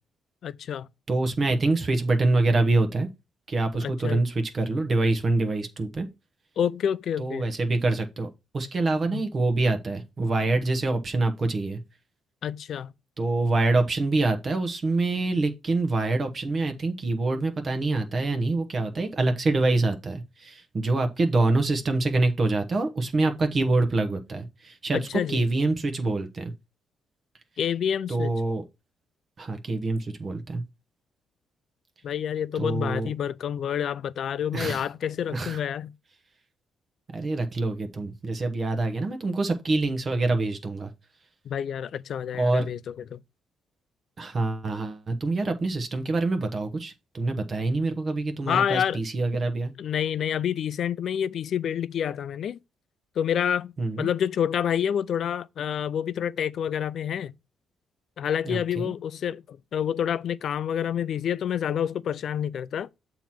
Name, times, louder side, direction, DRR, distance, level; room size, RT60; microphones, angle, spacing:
voice 1, 0.4-0.9 3.8-4.2 6.6-7.5 9.1-9.2 12.4-12.9 24.9-25.4 27.6-28.3 32.0-35.9 41.5-42.8 43.1-43.2 48.5-49.0 49.8-52.6 53.2-53.7 54.0-57.3 58.2-62.9, left 9 dB, 65° left, 0.3 m, -28 dB
voice 2, 1.1-3.1 3.5-6.1 7.2-8.3 8.5-11.8 13.2-26.5 28.1-28.6 29.4-30.6 32.5-33.1 34.5-34.8 35.3-35.6 37.1-40.9 42.4-42.7 44.2-49.7 53.8-54.1 58.4-58.9, right 2 dB, 40° right, 1.0 m, -25 dB
7.1 x 2.9 x 5.8 m
cardioid pair, 90°, 0 cm